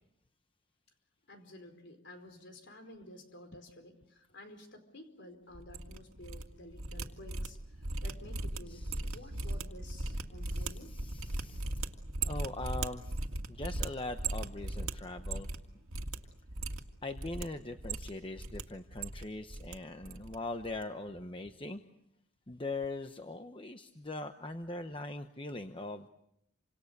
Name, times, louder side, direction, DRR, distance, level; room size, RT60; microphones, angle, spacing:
voice 1, 1.3-7.6 8.0-8.8 9.1-10.9, left 1 dB, 55° left, 7 dB, 4.6 m, -52 dB
sound 1, 5.5-6.4 6.7-15.6 15.9-16.2 16.5-17.4 17.8-18.6 18.9-19.7 20.0-20.4 20.6-20.8, right 2 dB, 80° right, 2.2 m, -38 dB
voice 2, 8.7-9.6 10.4-11.7 12.2-13.2 13.5-15.5 17.0-21.8 22.5-26.1, left 2 dB, 25° left, 7 dB, 0.9 m, -41 dB
28.5 x 26.5 x 6.7 m, 0.78 s
head